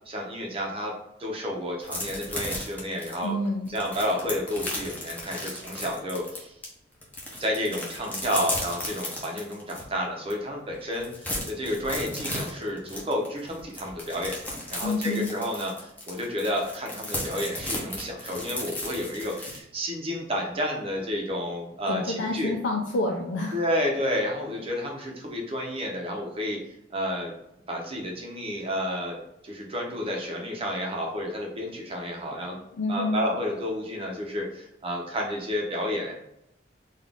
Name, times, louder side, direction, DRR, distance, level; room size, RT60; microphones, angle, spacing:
voice 1, 0.1-0.9 1.2-3.3 3.7-6.6 7.4-22.6 23.5-26.6 26.9-27.3 27.7-32.6 32.9-36.1, equal, 30° right, 0 dB, 0.8 m, -31 dB
sound 1, 1.8-6.7 7.0-9.8 10.3-10.4 10.7-19.6, left 1 dB, 10° left, 0.9 m, -35 dB
voice 2, 3.2-3.7 14.8-15.3 21.9-23.6 32.8-33.2, left 2 dB, 80° left, -1 dB, 0.5 m, -28 dB
4.0 x 2.6 x 3.6 m, 0.80 s
head